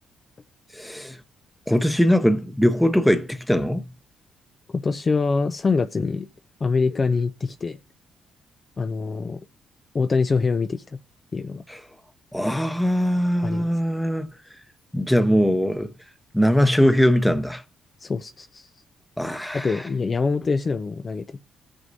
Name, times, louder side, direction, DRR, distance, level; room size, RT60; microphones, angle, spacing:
voice 1, 0.7-1.2 1.7-3.9 11.7-11.8 12.3-14.3 14.9-15.9 16.3-17.6 19.2-19.8, equal, 5° left, 0.8 m, -21 dB
voice 2, 4.7-6.3 6.6-7.8 8.8-9.4 9.9-10.8 11.3-11.6 13.4-13.7 18.0-18.7 19.5-21.4, left 4 dB, 35° left, 0.4 m, -24 dB
16.0 x 6.2 x 2.7 m
cardioid pair, 90°, 0 cm